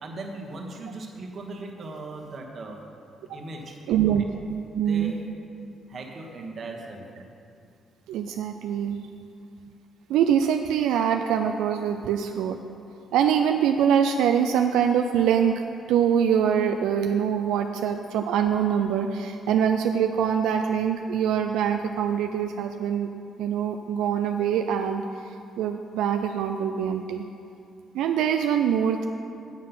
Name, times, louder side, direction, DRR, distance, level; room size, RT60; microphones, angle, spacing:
voice 1, 0.0-2.8 3.3-3.8 4.9-5.3 5.9-7.2, right 2 dB, 50° right, 1 dB, 1.3 m, -38 dB
voice 2, 3.9-4.2 4.7-5.1 8.1-9.0 10.1-12.6 13.1-15.5 15.9-23.1 23.4-25.0 25.6-27.2 27.9-29.1, right 8 dB, 90° right, 4 dB, 0.3 m, -24 dB
7.5 x 7.4 x 5.6 m, 2.5 s
cardioid pair, 90°, 0 cm